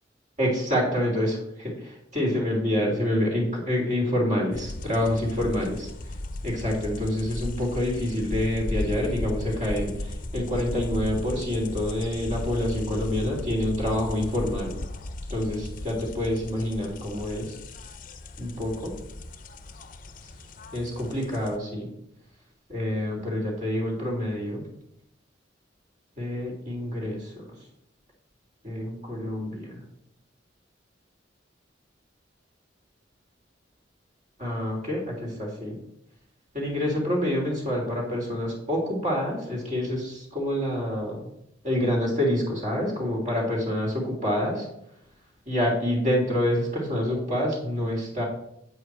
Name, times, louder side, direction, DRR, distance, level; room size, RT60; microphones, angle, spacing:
voice 1, 0.4-5.9 6.4-14.7 15.3-17.6 18.4-18.9 20.7-21.8 22.7-24.6 26.2-27.4 28.6-29.8 34.4-35.8 36.5-41.2 41.6-44.7 45.5-48.2, left 1 dB, 40° right, -2 dB, 3.1 m, -27 dB
sound 1, 4.5-21.6, left 1 dB, 45° left, 0.7 m, -36 dB
8.5 x 8.3 x 4.7 m, 0.76 s
head